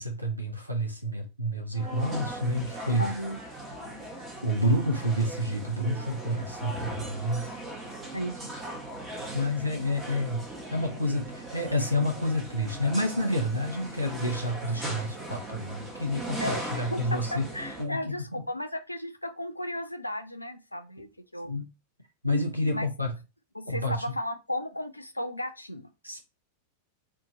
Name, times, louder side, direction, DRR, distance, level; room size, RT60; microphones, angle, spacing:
voice 1, 0.0-3.1 4.4-7.5 9.3-17.5 17.8-18.5 21.0-21.1 21.4-21.7 22.2-23.1 23.7-24.0 26.0-26.2, equal, 90° right, 0.8 m, -29 dB
sound 1, 1.7-17.8, right 1 dB, 10° right, 1.1 m, -39 dB
voice 2, 3.0-3.4 8.1-8.5 16.4-16.6 16.9-21.5 22.7-22.9 23.5-25.9, left 1 dB, 85° left, 0.4 m, -34 dB
2.9 x 2.4 x 3.7 m
figure-of-eight pair, 90°, 0 cm